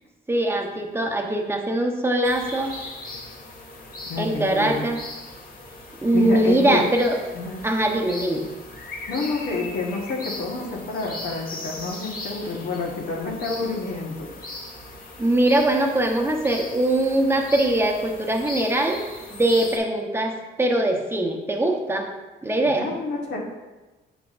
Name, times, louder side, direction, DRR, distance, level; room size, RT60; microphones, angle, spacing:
voice 1, 0.3-2.7 4.2-5.0 6.0-7.2 7.6-8.5 15.2-19.0 19.3-22.1 22.4-22.9, right 1 dB, 10° right, 2 dB, 0.9 m, -22 dB
sound 1, 2.2-19.8, left 2 dB, 45° left, 1.5 m, -39 dB
voice 2, 4.1-4.9 6.1-6.8 7.3-7.6 9.1-14.3 22.6-23.4, left 3 dB, 65° left, -3 dB, 1.4 m, -28 dB
7.3 x 5.8 x 2.5 m, 1.2 s
cardioid pair, 90°, 20 cm